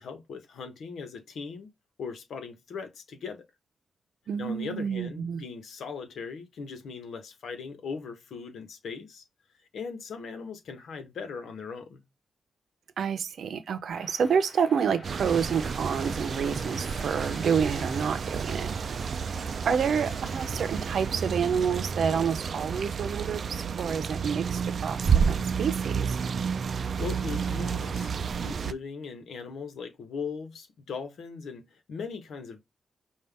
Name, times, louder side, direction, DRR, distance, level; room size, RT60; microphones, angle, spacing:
voice 1, 0.0-1.7 2.0-3.5 4.4-9.2 9.7-12.0 27.0-32.6, left 5 dB, 90° left, 1.2 m, -39 dB
voice 2, 4.3-5.4 13.0-19.1 19.6-26.2, right 7 dB, 75° right, 0.8 m, -29 dB
sound 1, 13.9-22.0, left 2 dB, 60° left, 2.0 m, -49 dB
sound 2, 15.0-28.7, right 6 dB, 60° right, 0.4 m, -30 dB
5.5 x 2.5 x 3.5 m
wide cardioid pair, 115°, 0 cm